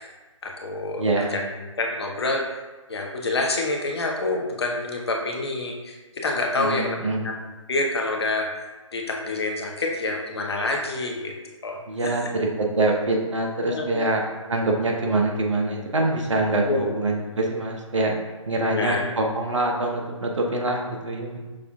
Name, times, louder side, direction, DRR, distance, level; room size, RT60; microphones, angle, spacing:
voice 1, 0.4-1.4 1.8-2.6 2.9-7.0 7.2-7.4 7.7-8.5 8.9-11.3 11.6-12.2 13.7-14.1 16.6-17.2 18.6-19.2, left 2 dB, 50° left, 1 dB, 0.7 m, -27 dB
voice 2, 1.0-1.3 6.6-7.3 11.9-18.1 18.5-21.4, right 2 dB, 65° right, 0 dB, 0.9 m, -25 dB
6.1 x 3.4 x 2.3 m, 1.2 s
figure-of-eight pair, 140°, 17 cm